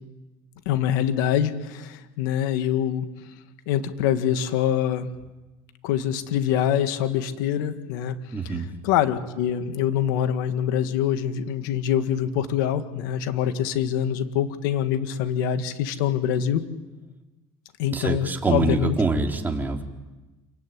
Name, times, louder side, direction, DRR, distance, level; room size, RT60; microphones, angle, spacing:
voice 1, 0.7-3.1 3.7-5.1 5.8-8.2 8.4-16.6 17.8-18.9, left 10 dB, 90° left, 9 dB, 1.9 m, -25 dB
voice 2, 8.3-8.7 17.9-19.8, right 3 dB, 15° right, 1 dB, 4.2 m, -25 dB
29.0 x 16.0 x 9.6 m, 1.1 s
supercardioid pair, 90°, 11 cm